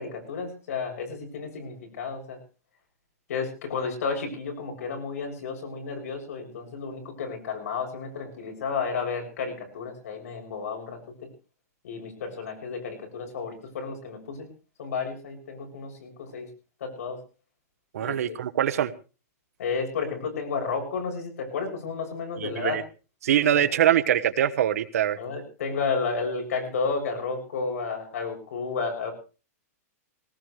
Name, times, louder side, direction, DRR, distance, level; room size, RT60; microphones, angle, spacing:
voice 1, 0.0-2.4 3.3-11.0 11.8-14.5 14.8-16.5 16.8-17.2 18.0-18.4 19.6-22.8 23.5-23.6 25.2-29.1, left 5 dB, 65° left, 2 dB, 7.1 m, -32 dB
voice 2, 17.9-18.9 22.4-22.8 23.2-25.2, right 11 dB, 65° right, 13 dB, 1.1 m, -23 dB
19.0 x 18.5 x 3.3 m, 0.34 s
supercardioid pair, 175°, 9 cm